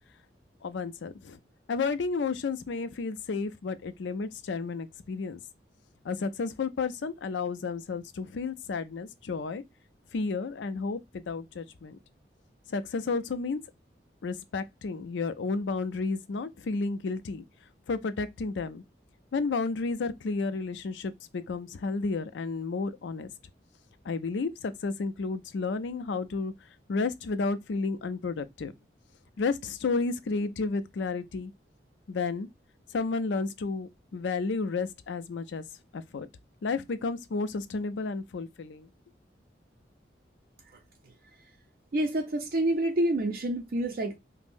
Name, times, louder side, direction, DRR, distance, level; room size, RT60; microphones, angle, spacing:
voice 1, 0.6-1.4 1.7-5.4 6.0-9.6 10.1-12.0 12.7-13.6 14.2-17.4 17.9-18.8 19.3-23.3 24.1-26.5 26.9-28.7 29.4-31.5 32.1-32.5 32.9-35.6 35.9-36.3 36.6-38.9, left 4 dB, 90° left, 0.4 m, -32 dB
voice 2, 41.9-44.2, right 1 dB, 50° right, 0.4 m, -27 dB
5.3 x 2.0 x 2.5 m
head